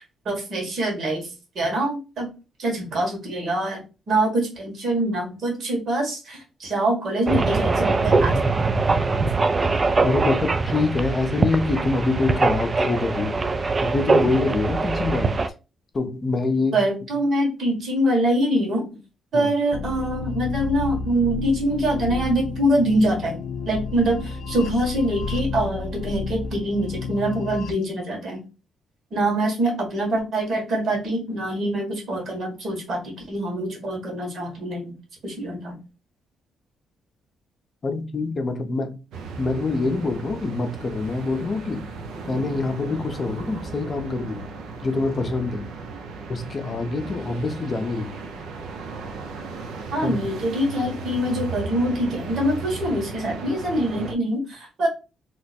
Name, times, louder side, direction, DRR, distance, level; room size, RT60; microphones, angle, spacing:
voice 1, 0.0-2.3 2.6-3.8 4.1-8.4 16.7-19.0 19.3-23.4 23.7-28.4 29.1-34.9 35.2-35.8 49.9-54.9, right 1 dB, 60° right, 1.6 m, -24 dB
sound 1, 7.3-15.5, right 3 dB, 30° right, 0.4 m, -22 dB
voice 2, 10.0-13.4 13.8-15.4 15.9-16.8 19.3-19.5 37.8-39.0 39.4-41.8 42.3-44.5 44.8-45.7 46.3-48.2 50.0-50.2, left 3 dB, 35° left, 0.6 m, -25 dB
sound 2, 19.7-27.7, left 5 dB, 90° left, 0.4 m, -31 dB
sound 3, 39.1-54.1, right 4 dB, 75° right, 0.6 m, -36 dB
2.9 x 2.1 x 4.1 m
cardioid pair, 90°, 0 cm